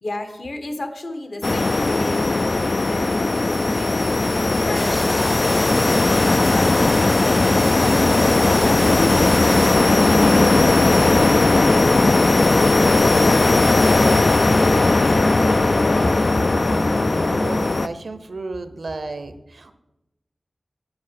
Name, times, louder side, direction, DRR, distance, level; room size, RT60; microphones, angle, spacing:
voice 1, 0.0-4.1 4.6-6.9 7.3-15.6, left 1 dB, 60° left, 6 dB, 1.3 m, -34 dB
sound 1, 1.4-17.9, left 2 dB, 45° left, 0.3 m, -17 dB
sound 2, 4.7-9.7, equal, ahead, 0.6 m, -31 dB
voice 2, 16.4-19.7, right 3 dB, 70° right, 10 dB, 0.8 m, -33 dB
8.8 x 7.4 x 5.8 m, 0.94 s
wide cardioid pair, 90°, 0 cm